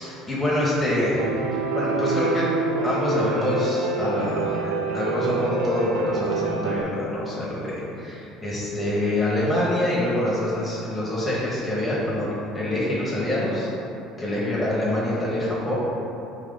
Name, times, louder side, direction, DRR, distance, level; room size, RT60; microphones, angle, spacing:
voice 1, 0.0-2.5 2.8-13.7 14.2-15.7, left 1 dB, 15° left, -8 dB, 1.0 m, -25 dB
Piano, 1.2-6.8, right 4 dB, 75° right, 0.3 m, -26 dB
3.7 x 3.0 x 3.9 m, 2.9 s
hypercardioid pair, 60°, 0 cm